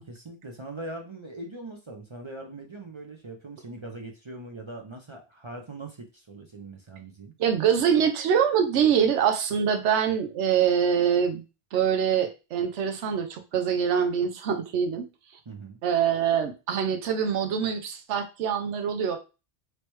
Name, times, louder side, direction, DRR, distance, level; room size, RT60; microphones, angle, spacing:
voice 1, 0.1-7.3 15.5-15.8, right 2 dB, 40° right, 2 dB, 0.4 m, -41 dB
voice 2, 7.4-11.4 11.7-15.1 15.8-19.2, right 8 dB, 80° right, 5 dB, 1.0 m, -24 dB
3.2 x 3.1 x 3.0 m, 0.29 s
omnidirectional pair, 1.2 m